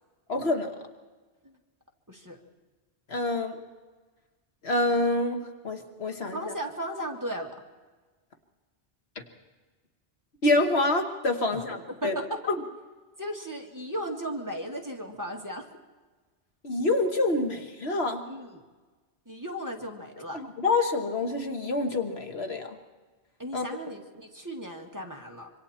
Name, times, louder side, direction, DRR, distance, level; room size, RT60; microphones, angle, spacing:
voice 1, 0.3-0.7 3.1-3.6 4.6-6.5 10.4-12.2 12.5-12.6 16.6-18.2 20.3-22.8 23.5-23.7, left 2 dB, 65° left, 5 dB, 1.7 m, -27 dB
voice 2, 2.1-2.4 6.3-7.6 11.5-12.4 13.2-15.7 18.2-18.6 19.3-20.4 23.4-25.5, equal, 15° right, 1 dB, 2.1 m, -36 dB
26.0 x 24.0 x 4.4 m, 1.3 s
omnidirectional pair, 1.2 m